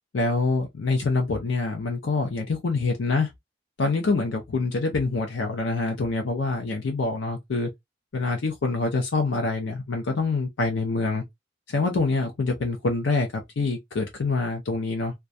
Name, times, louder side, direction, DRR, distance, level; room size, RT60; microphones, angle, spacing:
voice 1, 0.1-3.3 3.8-7.7 8.1-11.2 11.7-15.1, left 3 dB, 80° left, 0.5 m, -25 dB
2.2 x 2.2 x 2.5 m
head